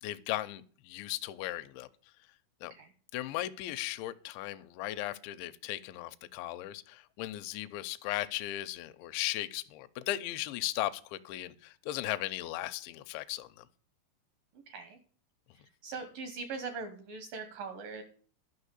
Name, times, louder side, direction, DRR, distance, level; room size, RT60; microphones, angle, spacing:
voice 1, 0.0-1.9 2.6-2.7 3.1-13.7, left 15 dB, 80° left, 2.8 m, -37 dB
voice 2, 14.7-15.0 15.8-18.0, right 4 dB, 80° right, 2.0 m, -41 dB
12.0 x 5.8 x 8.2 m
omnidirectional pair, 5.6 m